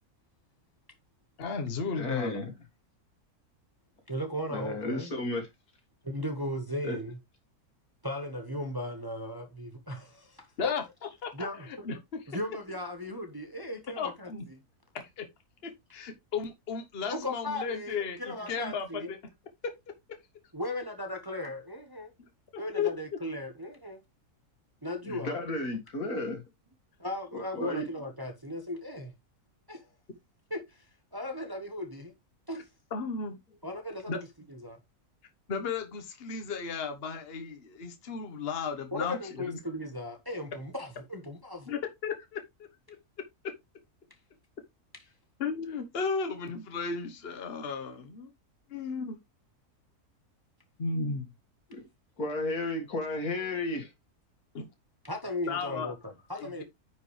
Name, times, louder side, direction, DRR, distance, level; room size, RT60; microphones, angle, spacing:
voice 1, 1.4-2.5 10.6-10.8 11.2-11.5 11.9-12.2 14.0-14.5 15.2-15.3 15.6-19.2 22.5-22.9 25.1-25.2 32.9-33.4 34.1-34.2 35.5-39.6 41.7-42.4 45.4-48.3 48.7-49.2 50.8-51.3 54.5-54.7 55.5-55.9 56.4-56.6, left 5 dB, 40° left, 1.4 m, -34 dB
voice 2, 1.9-2.5 4.5-5.5 6.8-7.0 25.0-26.4 27.3-27.9 51.7-51.8 52.2-53.9, left 2 dB, 75° left, 2.8 m, -33 dB
voice 3, 4.1-5.1 6.0-7.2 8.0-10.7 11.3-11.9 12.3-14.3 17.1-19.1 20.5-22.1 22.6-24.0 24.8-25.4 27.0-29.1 29.7-29.9 30.5-30.8 31.1-32.1 32.5-32.7 33.6-34.8 38.9-41.7 44.9-45.0 55.0-56.6, left 1 dB, 15° right, 1.0 m, -37 dB
9.6 x 5.2 x 3.2 m
omnidirectional pair, 1.6 m